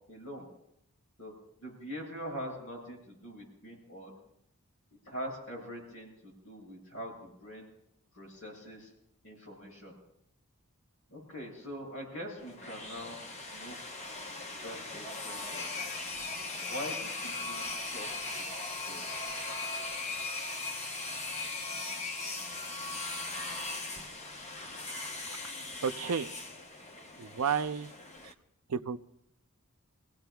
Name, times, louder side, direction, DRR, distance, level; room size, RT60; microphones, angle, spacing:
voice 1, 0.1-0.5 1.2-1.3 1.6-4.1 4.9-7.7 8.1-8.9 9.2-10.0 11.1-13.8 14.1-14.4 14.6-15.7 16.6-18.1 18.4-19.1, equal, 70° left, -2 dB, 7.3 m, -43 dB
sound 1, 12.4-28.3, left 3 dB, 30° left, 0.9 m, -39 dB
voice 2, 25.8-26.3 27.2-27.9 28.2-28.3 28.7-29.0, right 6 dB, 85° right, 10 dB, 0.5 m, -32 dB
26.5 x 16.5 x 2.3 m, 0.76 s
head